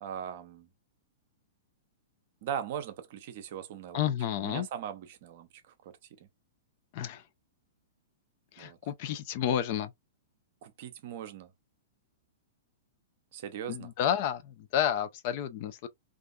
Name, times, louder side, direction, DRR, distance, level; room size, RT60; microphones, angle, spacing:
voice 1, 0.0-0.7 2.4-4.0 4.4-5.5 5.8-5.9 6.2-6.3 8.6-8.8 10.6-11.5 13.3-13.9, right 9 dB, 50° right, 0.5 m, -39 dB
voice 2, 3.9-4.7 6.9-7.2 8.6-9.9 13.7-15.9, left 10 dB, 45° left, 0.4 m, -30 dB
2.5 x 2.4 x 2.3 m
figure-of-eight pair, 105°, 0 cm